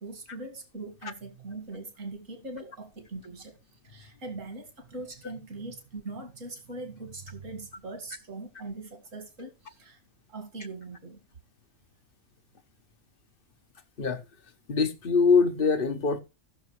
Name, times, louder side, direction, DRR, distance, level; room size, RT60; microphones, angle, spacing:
voice 1, 0.0-3.6 3.8-10.0 10.3-11.2, right 2 dB, 60° right, 2.4 m, -41 dB
voice 2, 14.7-16.2, left 5 dB, 45° left, 1.0 m, -23 dB
16.5 x 6.5 x 3.2 m
omnidirectional pair, 1.5 m